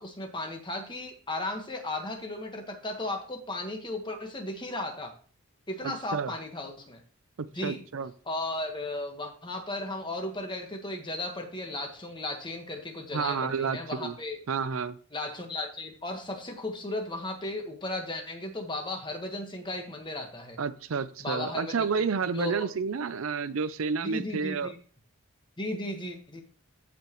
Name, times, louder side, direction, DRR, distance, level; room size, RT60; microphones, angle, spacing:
voice 1, 0.0-5.1 5.7-7.0 7.5-7.8 8.2-14.4 15.1-20.6 21.2-22.1 22.3-22.7 24.0-24.8 25.6-26.4, left 1 dB, 20° left, 1.5 m, -35 dB
voice 2, 7.4-8.1 13.1-14.2 14.5-15.0 20.6-24.7, right 5 dB, 75° right, 0.5 m, -30 dB
14.5 x 5.1 x 3.1 m
head